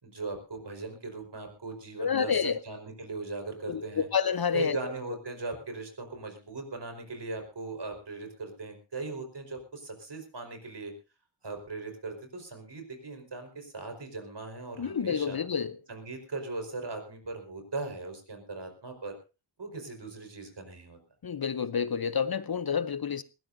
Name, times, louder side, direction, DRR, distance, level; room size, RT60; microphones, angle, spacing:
voice 1, 0.0-4.1 4.5-10.9 11.4-15.4 15.9-19.1 19.6-21.0, right 3 dB, 55° right, 4.7 m, -39 dB
voice 2, 2.0-2.6 3.7-4.8 14.8-15.7 21.2-23.2, left 7 dB, 45° left, 0.7 m, -29 dB
20.5 x 17.0 x 2.7 m
wide cardioid pair, 90°, 49 cm